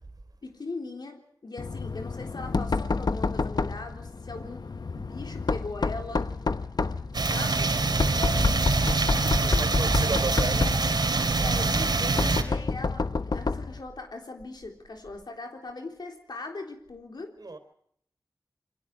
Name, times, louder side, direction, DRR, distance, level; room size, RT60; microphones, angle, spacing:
voice 1, 0.4-6.3 7.2-7.8 9.1-9.7 11.3-17.4, left 3 dB, 90° left, 3 dB, 3.7 m, -40 dB
Knock, 1.6-13.8, left 3 dB, 70° left, 0.9 m, -29 dB
sound 1, 7.1-12.4, right 3 dB, 90° right, 3.0 m, -25 dB
voice 2, 8.1-8.4 8.7-9.0 9.3-10.7 17.4-17.6, right 3 dB, 70° right, 8 dB, 3.7 m, -35 dB
28.5 x 23.0 x 4.8 m, 0.66 s
wide cardioid pair, 65°, 7 cm